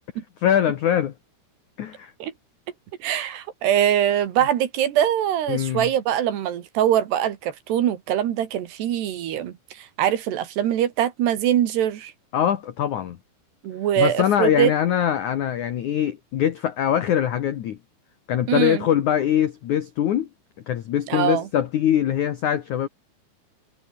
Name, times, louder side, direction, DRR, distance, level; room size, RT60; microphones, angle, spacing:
voice 1, 0.4-1.1 1.8-2.1 5.5-5.9 12.3-13.2 14.0-17.8 18.3-20.3 20.7-22.9, left 10 dB, 80° left, 1.7 m, -22 dB
voice 2, 3.0-12.1 13.6-14.7 18.5-18.9 21.1-21.5, right 10 dB, 65° right, 3.7 m, -23 dB
omnidirectional pair, 5.6 m